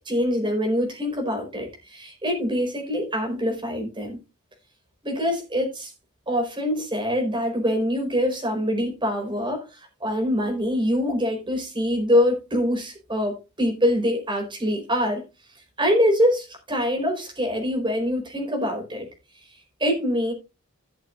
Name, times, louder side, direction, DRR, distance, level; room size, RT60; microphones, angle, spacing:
voice 1, 0.0-4.2 5.0-5.9 6.3-15.2 15.8-19.1 19.8-20.3, equal, 20° right, 4.4 m, -24 dB
16.5 x 6.6 x 2.5 m
head